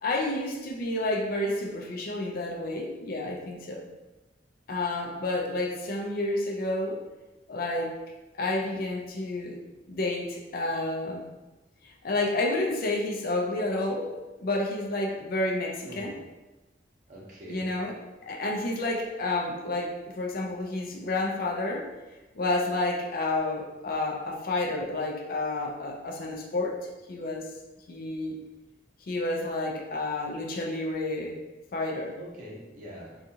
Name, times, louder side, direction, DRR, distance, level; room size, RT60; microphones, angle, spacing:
voice 1, 0.0-3.9 4.7-7.0 7.5-7.9 8.4-9.6 9.9-11.2 11.8-14.1 14.4-16.1 17.5-17.9 18.2-21.9 22.3-26.8 27.1-27.5 27.9-28.4 29.1-31.3 31.7-32.2, left 2 dB, 55° left, -1 dB, 0.5 m, -30 dB
voice 2, 17.1-17.9 32.2-33.2, equal, 45° right, -5 dB, 0.7 m, -44 dB
2.6 x 2.3 x 2.7 m, 1.1 s
head